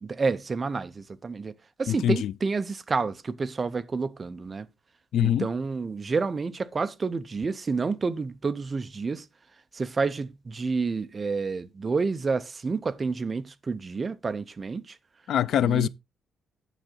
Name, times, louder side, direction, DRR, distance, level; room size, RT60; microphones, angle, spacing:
voice 1, 0.0-4.7 5.2-9.3 9.7-15.0 15.6-15.9, right 4 dB, 20° right, 0.5 m, -29 dB
voice 2, 1.9-2.3 5.1-5.5 15.3-15.9, left 11 dB, 60° left, 0.4 m, -23 dB
9.1 x 7.3 x 3.8 m
cardioid pair, 175°, 0 cm